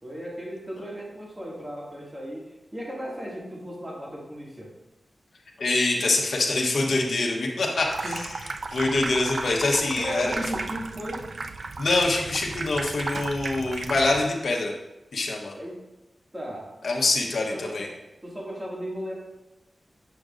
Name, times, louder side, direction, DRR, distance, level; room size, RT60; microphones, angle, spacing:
voice 1, 0.0-4.7 8.0-8.2 10.0-11.3 15.6-15.8 16.3-16.7 17.5-17.9 18.2-19.1, equal, 20° right, -4 dB, 2.1 m, -36 dB
voice 2, 5.6-8.3 8.7-10.3 11.8-14.7 15.1-15.5 16.8-17.9, left 2 dB, 80° left, 0 dB, 1.0 m, -25 dB
Water tap faucet / Sink (filling or washing), 7.8-14.3, right 3 dB, 60° right, 0.3 m, -34 dB
7.7 x 6.2 x 2.5 m, 0.96 s
wide cardioid pair, 85°, 0 cm